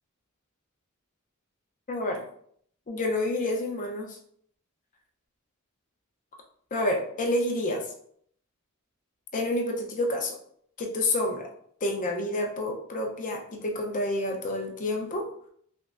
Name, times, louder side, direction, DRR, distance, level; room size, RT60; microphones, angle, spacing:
voice 1, 1.9-2.2 2.9-4.2 6.7-7.8 9.3-10.4 10.8-11.5 11.8-15.3, left 1 dB, 35° left, 1 dB, 0.6 m, -28 dB
5.7 x 2.1 x 2.5 m, 0.65 s
head